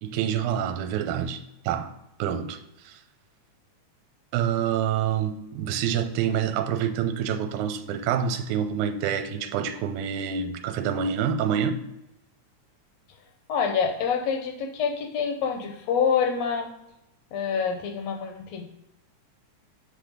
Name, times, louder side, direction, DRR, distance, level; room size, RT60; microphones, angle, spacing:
voice 1, 0.0-1.9 2.2-3.0 4.3-11.8, right 8 dB, 80° right, 2.0 m, -27 dB
voice 2, 13.5-16.7 17.3-18.6, left 6 dB, 75° left, 1.6 m, -26 dB
7.5 x 3.4 x 5.0 m
omnidirectional pair, 3.6 m